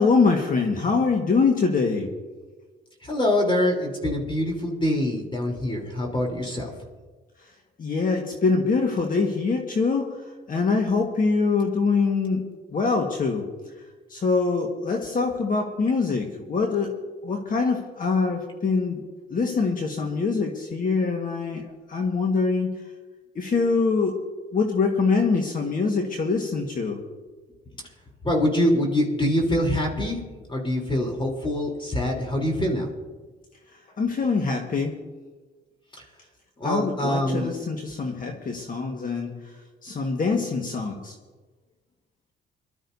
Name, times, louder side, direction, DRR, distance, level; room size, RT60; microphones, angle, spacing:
voice 1, 0.0-2.1 7.8-12.4 12.7-13.5 14.1-16.9 17.2-19.0 19.3-22.8 23.3-24.2 24.5-27.0 34.0-35.0 36.6-39.3 39.8-41.1, left 4 dB, 45° left, 2 dB, 1.6 m, -24 dB
voice 2, 3.0-6.7 28.2-30.2 30.5-32.9 36.6-37.5, left 1 dB, 25° left, 0 dB, 3.7 m, -24 dB
23.5 x 12.5 x 2.8 m, 1.3 s
cardioid pair, 90°, 20 cm